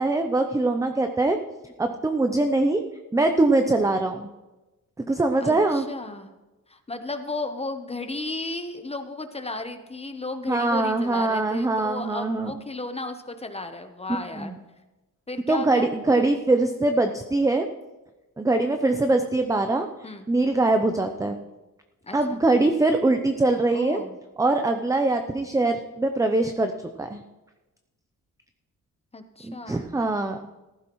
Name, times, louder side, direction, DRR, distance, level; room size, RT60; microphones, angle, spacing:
voice 1, 0.0-1.4 1.8-2.8 3.1-4.3 5.0-5.9 10.5-12.5 14.3-14.6 15.5-17.7 18.4-19.9 20.3-21.4 22.1-24.0 24.4-26.7 27.0-27.2 29.4-30.4, right 2 dB, 10° right, 6 dB, 0.5 m, -22 dB
voice 2, 5.4-6.4 6.7-14.6 15.3-15.9 20.0-20.3 22.0-22.4 23.7-24.2 29.1-29.9, left 2 dB, 20° left, 7 dB, 0.8 m, -34 dB
15.0 x 14.5 x 3.1 m, 1.1 s
wide cardioid pair, 140°, 35 cm